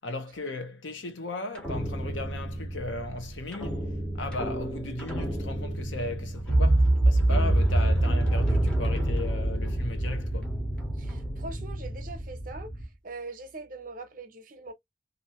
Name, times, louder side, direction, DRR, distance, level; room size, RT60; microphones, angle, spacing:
voice 1, 0.0-10.5, left 2 dB, 80° left, 0.8 m, -36 dB
sound 1, 1.6-12.8, right 1 dB, 5° left, 0.8 m, -27 dB
voice 2, 11.0-12.7 13.0-14.7, right 3 dB, 45° right, 0.8 m, -42 dB
2.7 x 2.6 x 2.9 m
head